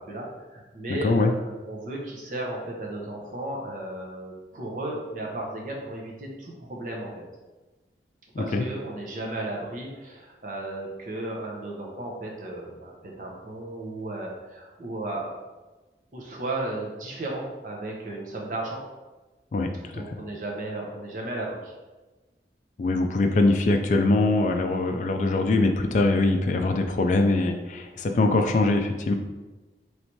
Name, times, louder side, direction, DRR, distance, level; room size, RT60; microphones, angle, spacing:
voice 1, 0.5-7.1 8.4-15.3 16.1-18.8 19.9-21.8, right 2 dB, 45° right, -1 dB, 0.8 m, -34 dB
voice 2, 8.4-8.7 19.5-20.0 22.8-29.1, left 2 dB, 45° left, 5 dB, 0.3 m, -23 dB
3.2 x 2.8 x 4.5 m, 1.2 s
head